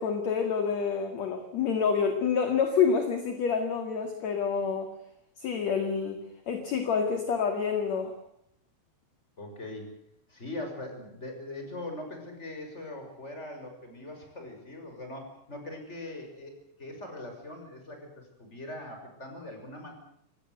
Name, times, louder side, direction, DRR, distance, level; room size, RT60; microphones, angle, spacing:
voice 1, 0.0-4.9 5.4-8.1, left 6 dB, 50° left, 6 dB, 2.6 m, -28 dB
voice 2, 9.4-9.9 10.3-19.9, left 1 dB, 15° left, 4 dB, 6.1 m, -41 dB
25.5 x 18.5 x 8.0 m, 0.74 s
omnidirectional pair, 5.1 m